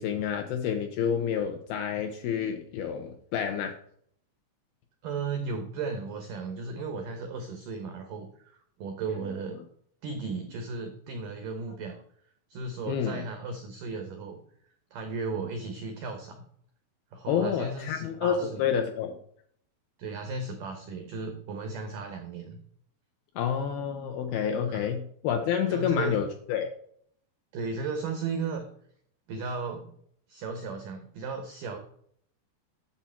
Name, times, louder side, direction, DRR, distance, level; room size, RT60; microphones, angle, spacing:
voice 1, 0.0-3.7 12.9-13.3 17.3-19.2 23.4-26.7, left 8 dB, 80° left, 5 dB, 2.2 m, -29 dB
voice 2, 5.0-9.6 10.0-12.0 12.5-14.4 14.9-16.4 17.1-18.6 20.0-22.6 24.7-24.9 25.7-26.2 27.5-28.6 29.3-29.9 30.3-31.8, right 4 dB, 90° right, 5 dB, 1.9 m, -35 dB
10.5 x 7.3 x 4.4 m, 0.64 s
omnidirectional pair, 5.4 m